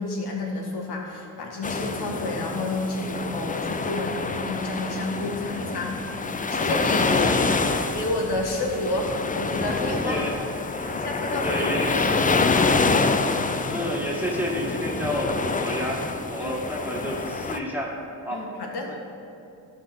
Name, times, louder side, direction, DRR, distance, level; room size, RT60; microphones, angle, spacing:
voice 1, 0.0-6.0 6.5-7.5 7.9-10.2 10.9-11.6 11.9-12.8 16.4-16.5 18.3-18.9, left 2 dB, 50° left, 0 dB, 1.8 m, -30 dB
sound 1, 1.6-17.6, left 4 dB, 15° left, 0.5 m, -26 dB
voice 2, 7.1-7.6 10.0-10.4 10.6-11.1 11.4-12.3 13.6-17.9 18.3-18.5 18.9-19.0, equal, 5° right, -3 dB, 2.1 m, -30 dB
12.5 x 5.4 x 3.7 m, 2.6 s
hypercardioid pair, 45°, 48 cm